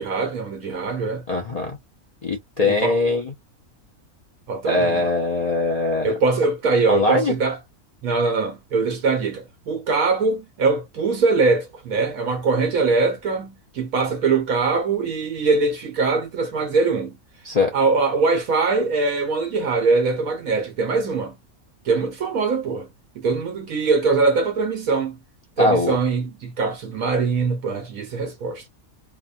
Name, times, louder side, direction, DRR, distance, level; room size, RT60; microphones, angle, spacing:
voice 1, 0.0-1.3 2.6-3.0 4.5-5.1 6.0-7.6 8.0-17.2 17.7-21.4 21.8-22.9 23.1-25.2 25.6-28.7, right 4 dB, 70° right, 1.2 m, -22 dB
voice 2, 1.3-1.8 2.2-3.3 4.6-6.1 6.9-7.3 17.4-17.7 25.6-26.0, left 3 dB, 65° left, 0.3 m, -21 dB
3.0 x 2.1 x 2.4 m
omnidirectional pair, 1.6 m